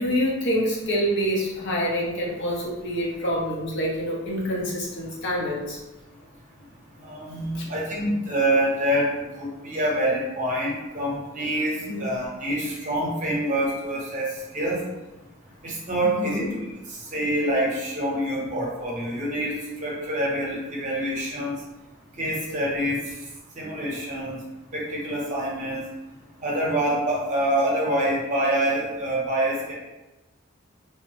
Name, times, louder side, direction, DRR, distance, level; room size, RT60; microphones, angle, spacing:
voice 1, 0.0-5.8 7.5-7.6 11.9-12.0 16.0-16.5, equal, 60° left, -4 dB, 0.8 m, -26 dB
voice 2, 7.0-11.7 12.0-14.3 14.5-14.8 15.6-21.5 22.2-23.0 23.6-24.4 24.7-25.8 26.4-29.7, right 1 dB, 40° right, -4 dB, 0.8 m, -26 dB
3.3 x 2.0 x 2.9 m, 1.1 s
head